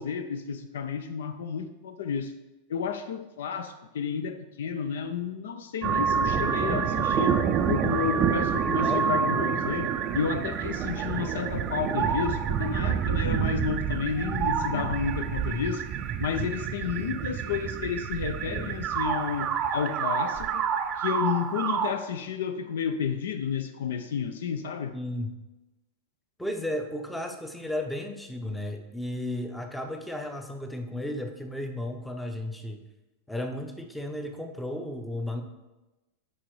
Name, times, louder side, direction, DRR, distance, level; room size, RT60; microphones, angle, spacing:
voice 1, 0.0-2.3 2.7-7.3 7.7-15.9 16.2-20.6 21.0-24.9, left 7 dB, 60° left, 10 dB, 0.4 m, -31 dB
sound 1, 5.8-21.9, right 7 dB, 35° right, 0.4 m, -28 dB
voice 2, 24.9-25.3 26.4-32.8 33.3-35.4, left 1 dB, 5° left, 5 dB, 0.6 m, -34 dB
10.0 x 4.3 x 3.1 m, 1.0 s
figure-of-eight pair, 90°, 0 cm